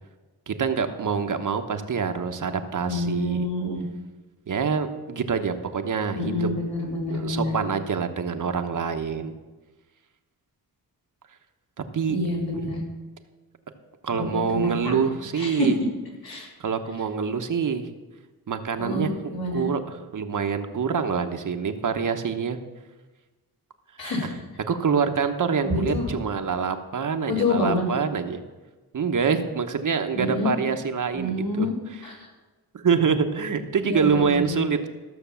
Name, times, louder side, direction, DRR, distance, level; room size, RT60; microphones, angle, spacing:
voice 1, 0.5-3.5 4.5-6.5 7.1-9.3 11.9-12.2 12.5-12.8 14.0-15.8 16.6-17.9 18.5-19.1 19.5-22.6 24.7-28.4 28.9-31.7 32.7-34.9, right 6 dB, 50° right, 7 dB, 1.1 m, -26 dB
voice 2, 2.8-3.8 6.2-7.5 12.1-12.8 14.1-15.0 15.3-15.7 16.2-16.5 18.8-19.7 24.0-24.3 25.6-26.0 27.3-27.8 30.2-30.5 31.1-31.7 32.0-32.3 33.8-34.6, left 2 dB, 65° left, -2 dB, 4.2 m, -27 dB
14.0 x 6.6 x 7.0 m, 1.2 s
cardioid pair, 90°, 38 cm